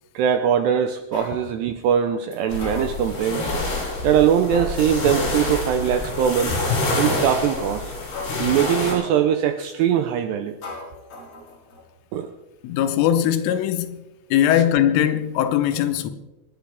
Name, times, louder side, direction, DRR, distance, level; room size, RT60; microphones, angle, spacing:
voice 1, 0.1-3.5 4.0-6.6 7.0-7.9 8.4-10.6 12.1-12.3 14.5-14.6, right 9 dB, 80° right, 2.4 m, -21 dB
sound 1, 1.1-1.4 2.3-3.3 3.9-4.0 4.5-5.3 5.8-5.9 6.6-7.2 7.8-9.2 9.8-10.1 10.6-11.8 12.1-12.2, left 2 dB, 35° left, 4.7 m, -38 dB
sound 2, 2.5-8.9, left 2 dB, 60° left, 7.6 m, -27 dB
voice 2, 12.6-14.0 14.3-16.1, left 10 dB, 85° left, 3.4 m, -20 dB
27.0 x 10.5 x 3.4 m
omnidirectional pair, 5.6 m